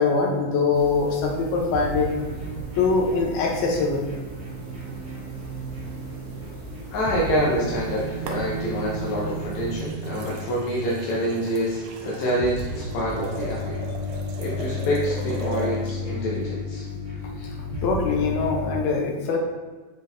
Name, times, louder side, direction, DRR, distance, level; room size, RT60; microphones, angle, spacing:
voice 1, 0.0-2.1 2.8-4.1 17.8-19.4, left 4 dB, 85° left, 0 dB, 2.8 m, -23 dB
sound 1, 0.7-9.8, equal, 45° right, 1.5 m, -41 dB
sound 2, 1.7-18.7, left 1 dB, 25° right, 0.6 m, -33 dB
voice 2, 6.9-13.8 14.4-16.9, equal, 65° left, -6 dB, 1.9 m, -26 dB
sound 3, 8.3-8.9 9.5-16.0 17.9-18.1, right 3 dB, 75° right, 2.1 m, -39 dB
7.2 x 3.9 x 4.0 m, 1.4 s
omnidirectional pair, 4.2 m